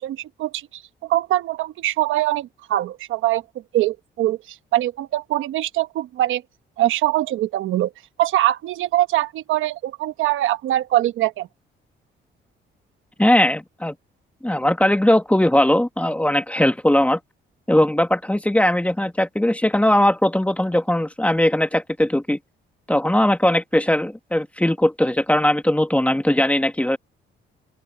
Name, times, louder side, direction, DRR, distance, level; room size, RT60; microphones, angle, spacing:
voice 1, 0.0-3.4 3.7-6.4 6.8-7.9 8.2-11.5, right 14 dB, 85° right, 1.1 m, -23 dB
voice 2, 13.2-13.9 14.4-17.2 17.7-22.4 22.9-27.0, left 1 dB, 5° left, 1.6 m, -19 dB
open air
cardioid pair, 90°, 20 cm